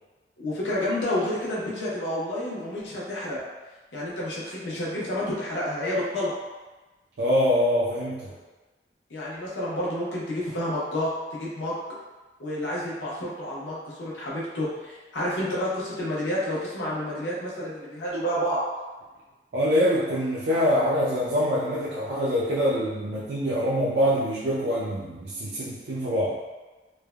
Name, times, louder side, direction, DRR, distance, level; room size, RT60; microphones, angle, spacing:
voice 1, 0.4-3.4 3.9-6.3 9.1-11.8 12.4-18.6, left 1 dB, 85° left, -6 dB, 0.7 m, -29 dB
voice 2, 7.2-8.3 19.5-26.3, equal, 65° right, -7 dB, 0.4 m, -24 dB
3.2 x 2.1 x 2.3 m, 1.2 s
head